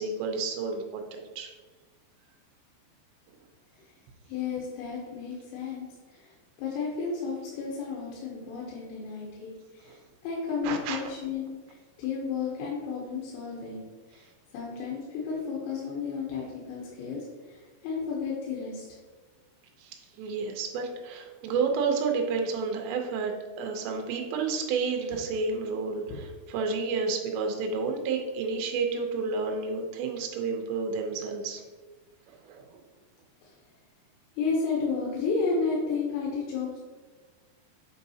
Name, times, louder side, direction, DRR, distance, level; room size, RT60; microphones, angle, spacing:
voice 1, 0.0-1.5 9.9-10.0 10.6-11.0 19.8-31.6 32.3-32.8, right 4 dB, 85° right, 3 dB, 3.0 m, -31 dB
voice 2, 4.3-6.3 6.6-11.5 12.0-13.8 14.1-14.3 14.5-18.8 26.1-26.2 33.4-33.5 34.4-36.8, left 5 dB, 90° left, -3 dB, 3.1 m, -32 dB
8.1 x 4.7 x 2.7 m, 1.3 s
omnidirectional pair, 4.9 m